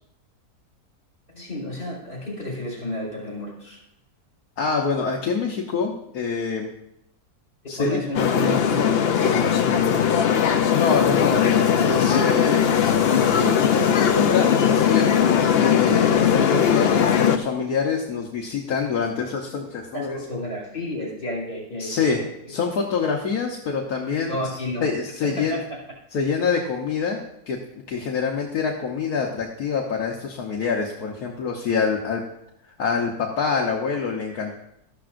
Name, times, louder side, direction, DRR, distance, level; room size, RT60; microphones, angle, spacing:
voice 1, 1.3-3.8 7.8-10.4 19.9-22.6 24.3-24.9 25.2-25.8, left 1 dB, 40° left, -3 dB, 5.3 m, -32 dB
voice 2, 4.6-6.7 7.7-8.0 10.7-12.7 13.1-15.1 15.6-20.2 21.8-22.2 22.5-24.4 24.8-25.6 26.1-27.2 27.5-27.6 27.9-32.2 32.8-34.5, left 5 dB, 75° left, 0 dB, 1.5 m, -25 dB
sound 1, 8.1-17.4, left 8 dB, 55° left, 0.7 m, -19 dB
13.5 x 12.0 x 2.6 m, 0.79 s
omnidirectional pair, 1.6 m